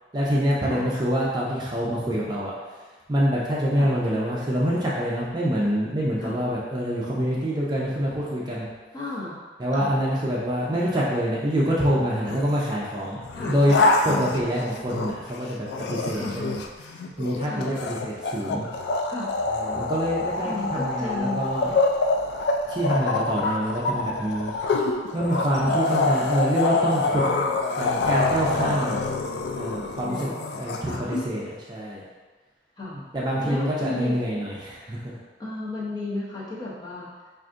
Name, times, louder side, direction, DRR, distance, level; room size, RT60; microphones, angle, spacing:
voice 1, 0.1-2.5 3.1-8.7 9.6-13.2 13.5-13.8 14.0-16.6 17.2-18.7 19.5-21.8 22.7-24.5 25.1-27.2 27.7-29.0 29.5-32.0 33.1-35.2, equal, 25° right, -6 dB, 0.5 m, -26 dB
voice 2, 8.9-9.3 9.7-9.9 13.3-13.5 14.1-14.4 16.1-16.4 17.4-17.7 19.1-19.3 20.4-21.4 25.6-25.8 28.6-28.8 30.1-31.1 32.8-33.0 33.4-34.2 35.4-37.1, left 2 dB, 25° left, -7 dB, 0.7 m, -33 dB
sound 1, 12.3-12.7 13.2-15.3 15.7-31.3, left 3 dB, 70° left, 0.3 m, -26 dB
4.7 x 2.5 x 2.5 m, 1.4 s
head